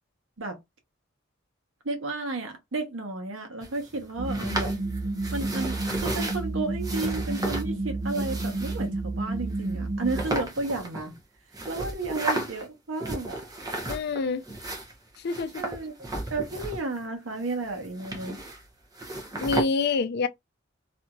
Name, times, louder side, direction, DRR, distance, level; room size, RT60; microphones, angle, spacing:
voice 1, 1.8-4.7 5.3-11.2 11.7-13.4 15.6-15.9 16.3-18.4, right 3 dB, 85° right, 1.0 m, -32 dB
sound 1, 3.6-6.4 6.8-7.7 8.1-8.8 9.5-9.7 10.1-11.2 11.5-12.7 13.0-14.2 14.4-17.0 17.3-18.7 18.9-19.6, right 1 dB, 20° right, 0.9 m, -34 dB
sound 2, 4.2-10.3, right 2 dB, 40° right, 0.5 m, -30 dB
voice 2, 13.9-14.4 15.2-15.6 19.4-20.3, left 4 dB, 55° left, 0.4 m, -26 dB
2.9 x 2.7 x 2.3 m
head